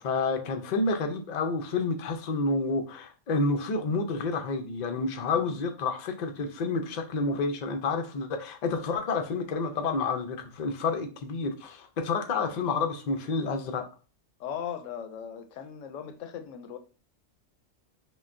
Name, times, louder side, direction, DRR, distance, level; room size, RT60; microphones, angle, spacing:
voice 1, 0.0-13.9, left 3 dB, 55° left, 0.5 m, -29 dB
voice 2, 14.4-16.8, left 8 dB, 80° left, 0.9 m, -38 dB
5.6 x 2.3 x 2.5 m
omnidirectional pair, 1.3 m